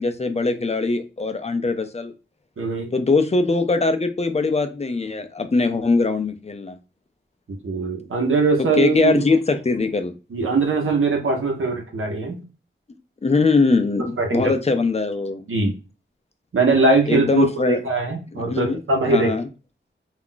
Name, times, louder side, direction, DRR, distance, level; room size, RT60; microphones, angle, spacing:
voice 1, 0.0-2.1 2.9-6.8 8.8-10.1 13.2-15.5 17.1-17.8 18.3-18.8 19.0-19.5, left 3 dB, 30° left, 8 dB, 0.4 m, -21 dB
voice 2, 2.6-2.9 7.6-9.2 10.3-12.4 14.2-14.5 15.5-15.7 16.5-19.3, right 3 dB, 85° right, 0 dB, 0.7 m, -21 dB
2.4 x 2.1 x 3.8 m, 0.32 s
wide cardioid pair, 80°, 21 cm